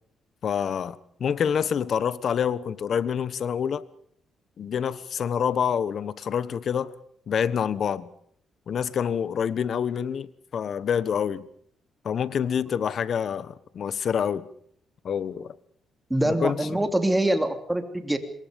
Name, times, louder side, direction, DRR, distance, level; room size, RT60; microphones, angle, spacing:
voice 1, 0.4-3.8 4.6-6.9 7.3-8.1 8.7-11.5 12.0-14.5 15.0-15.6 16.2-16.7, left 7 dB, 55° left, 1.3 m, -27 dB
voice 2, 16.1-18.2, right 1 dB, 10° right, 3.1 m, -24 dB
26.5 x 22.5 x 5.3 m
cardioid pair, 90°, 0 cm